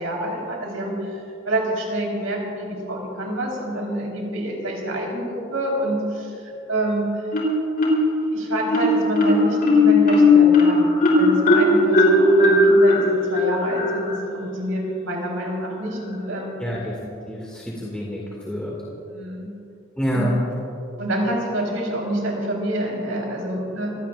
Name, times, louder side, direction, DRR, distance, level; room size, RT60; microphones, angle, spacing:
voice 1, 0.0-7.3 8.3-10.9 11.2-13.0 13.3-16.6 19.1-19.5 20.1-20.3 21.0-23.9, right 1 dB, 85° right, -2 dB, 4.3 m, -27 dB
Marimba xylophone, 7.3-8.2 8.7-14.2, left 2 dB, 45° left, 3.9 m, -17 dB
voice 2, 16.6-18.2 18.5-18.7 20.0-20.3, equal, 5° left, -6 dB, 2.3 m, -27 dB
27.5 x 17.0 x 2.6 m, 2.8 s
head